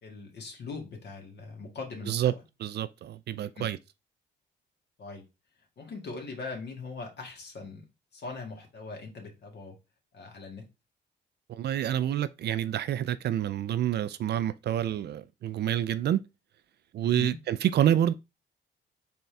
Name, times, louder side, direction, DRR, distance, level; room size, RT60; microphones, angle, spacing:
voice 1, 0.0-2.3 3.6-3.7 5.0-5.3 5.8-7.9 8.1-9.8 10.1-10.7 17.0-17.4, left 4 dB, 60° left, 1.8 m, -41 dB
voice 2, 2.6-3.8 11.5-16.2 16.9-18.1, right 11 dB, 55° right, 0.4 m, -28 dB
4.2 x 3.6 x 3.3 m
cardioid pair, 90°, 20 cm